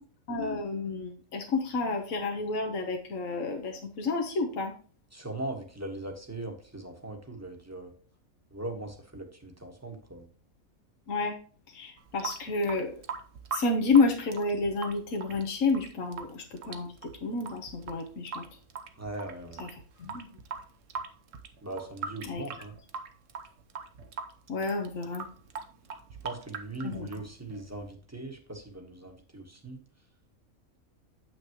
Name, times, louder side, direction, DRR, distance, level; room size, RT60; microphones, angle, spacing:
voice 1, 0.3-4.7 11.1-11.3 11.7-13.0 13.5-16.9 17.2-18.4 19.6-19.7 20.0-20.3 22.3-22.4 24.5-25.2 26.9-27.1, left 3 dB, 70° left, 3 dB, 1.5 m, -29 dB
voice 2, 5.1-7.9 8.5-10.3 19.0-19.6 21.6-22.7 26.2-29.8, right 2 dB, 10° right, 3 dB, 1.3 m, -40 dB
Water tap faucet / Sink (filling or washing) / Drip, 12.0-27.9, right 5 dB, 65° right, 1.2 m, -42 dB
8.3 x 6.1 x 3.0 m, 0.43 s
omnidirectional pair, 1.5 m